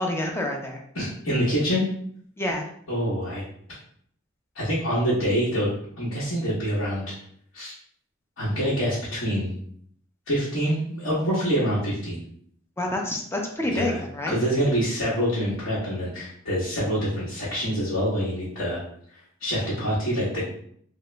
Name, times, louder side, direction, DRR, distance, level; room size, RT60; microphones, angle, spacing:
voice 1, 0.0-0.8 2.4-2.7 12.8-14.4, left 1 dB, 10° left, 1 dB, 0.4 m, -28 dB
voice 2, 0.9-1.8 2.9-3.4 4.5-5.7 6.0-7.1 7.5-7.7 8.4-9.6 10.3-12.2 13.7-14.0 14.3-18.8 19.4-20.4, equal, 65° left, -9 dB, 1.0 m, -26 dB
2.9 x 2.2 x 3.2 m, 0.64 s
head